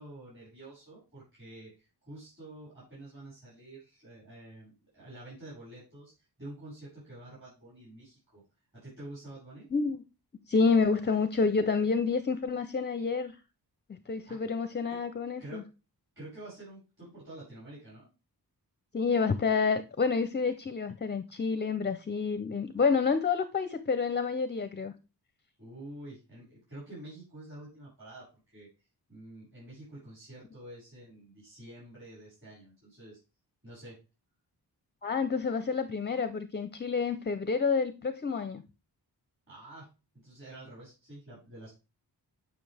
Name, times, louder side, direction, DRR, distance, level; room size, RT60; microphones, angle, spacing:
voice 1, 0.0-6.1 6.4-8.4 8.7-9.7 14.3-14.4 14.9-15.0 15.4-15.7 16.2-18.1 25.6-28.7 29.1-33.2 33.6-34.0 39.5-41.7, right 1 dB, 30° right, -9 dB, 5.4 m, -48 dB
voice 2, 9.7-10.0 10.5-13.4 14.1-15.6 18.9-24.9 35.0-38.6, left 5 dB, 25° left, 11 dB, 0.5 m, -28 dB
10.5 x 6.0 x 3.3 m, 0.30 s
wide cardioid pair, 160°, 41 cm